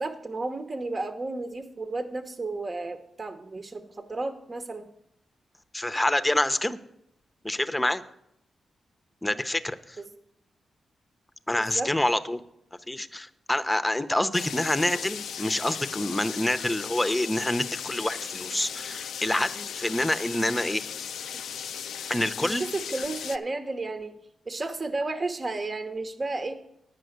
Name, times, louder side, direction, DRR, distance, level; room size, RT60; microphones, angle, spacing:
voice 1, 0.0-4.9 10.0-10.1 11.7-11.9 21.3-21.4 22.4-24.2 24.5-26.5, right 2 dB, 40° right, 8 dB, 1.0 m, -32 dB
voice 2, 5.7-6.8 7.4-8.0 9.2-10.0 11.5-12.4 12.9-20.8 22.1-22.6, left 1 dB, 15° left, 11 dB, 0.7 m, -27 dB
sound 1, 14.3-23.4, left 8 dB, 85° left, 0.3 m, -37 dB
10.0 x 5.8 x 7.9 m, 0.79 s
cardioid pair, 55°, 0 cm